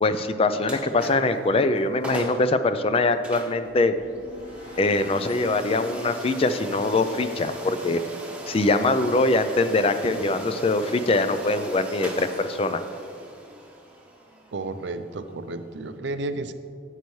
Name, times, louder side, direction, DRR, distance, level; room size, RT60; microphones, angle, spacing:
voice 1, 0.0-3.9 4.8-8.0 8.5-12.8, left 2 dB, 30° left, 10 dB, 0.4 m, -23 dB
sound 1, 0.6-1.4 1.8-1.9 2.0-2.5 3.2-16.0, right 2 dB, 5° right, 1.0 m, -39 dB
sound 2, 3.5-8.5, right 1 dB, 85° left, 1.4 m, -45 dB
voice 2, 14.5-16.5, right 2 dB, 70° right, 10 dB, 0.5 m, -32 dB
11.5 x 8.1 x 3.2 m, 2.3 s
head